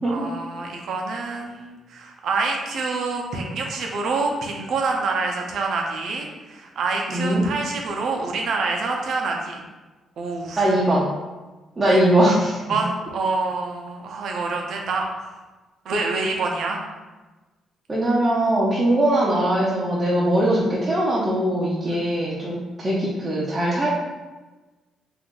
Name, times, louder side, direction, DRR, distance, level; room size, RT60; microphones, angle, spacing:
voice 1, 0.1-9.6 10.2-10.6 11.9-12.0 12.7-15.3 15.8-16.8 21.8-22.0, right 3 dB, 70° right, 1 dB, 0.6 m, -27 dB
voice 2, 7.1-7.4 10.6-11.1 11.8-12.6 17.9-23.9, right 1 dB, 25° right, -7 dB, 0.6 m, -21 dB
2.6 x 2.4 x 3.7 m, 1.2 s
cardioid pair, 90°, 0 cm